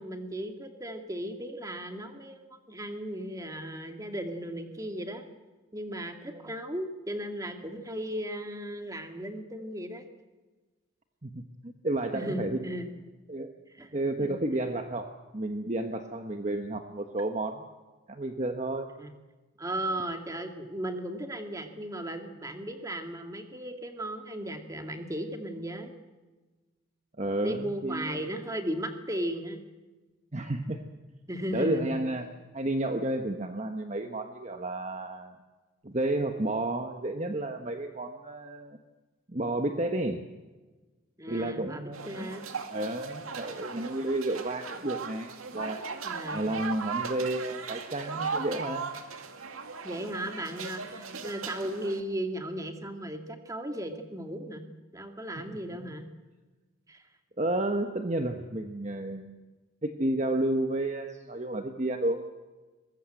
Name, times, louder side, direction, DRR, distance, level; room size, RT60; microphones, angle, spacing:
voice 1, 0.0-2.4 2.7-5.3 5.7-10.1 12.1-12.9 13.7-13.9 14.2-14.4 19.0-19.1 19.6-25.9 27.4-29.6 31.3-31.8 41.2-42.4 46.0-46.6 49.8-54.6 54.9-56.1 56.9-57.0, right 1 dB, 15° right, 5 dB, 2.2 m, -36 dB
voice 2, 11.2-12.7 13.3-13.5 13.9-17.6 18.1-18.9 27.2-28.2 30.3-30.8 31.5-32.3 32.5-35.3 35.8-38.8 39.3-40.2 41.3-42.3 42.7-45.8 46.3-48.9 55.5-55.6 55.9-56.0 57.4-59.4 59.8-62.2, right 1 dB, 35° right, 5 dB, 1.3 m, -31 dB
sound 1, 41.9-52.0, right 5 dB, 85° right, 2.3 m, -38 dB
23.0 x 21.0 x 7.8 m, 1.2 s
head